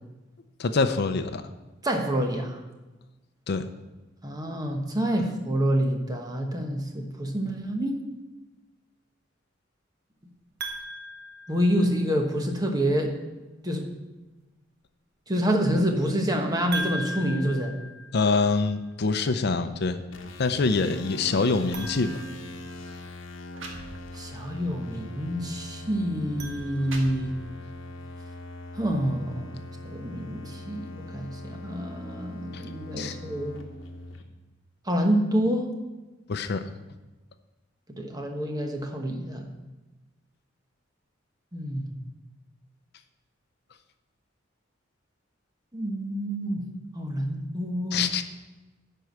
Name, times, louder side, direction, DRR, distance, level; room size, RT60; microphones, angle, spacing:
voice 1, 0.6-1.4 3.5-3.7 18.1-20.0 20.4-22.2 32.5-32.6 33.0-33.1 36.3-36.7 47.9-48.2, left 4 dB, 55° left, 9 dB, 0.5 m, -25 dB
voice 2, 1.8-2.6 4.2-8.0 11.5-13.1 13.6-13.9 15.3-17.7 24.1-27.3 28.7-33.6 34.8-35.7 37.9-39.5 41.5-41.9 45.7-46.6 46.9-48.1, equal, 20° right, 2 dB, 1.1 m, -27 dB
sound 1, 10.6-12.3 16.7-18.7 21.6-23.2 26.1-27.4, right 1 dB, 60° right, 1.2 m, -39 dB
sound 2, 20.1-34.2, left 1 dB, 80° left, 0.9 m, -41 dB
sound 3, 22.4-22.5 23.2-23.3 23.5-24.4 25.0-25.2 25.9-26.0 26.5-27.7, right 2 dB, 90° right, 1.4 m, -43 dB
10.5 x 4.6 x 6.5 m, 1.1 s
head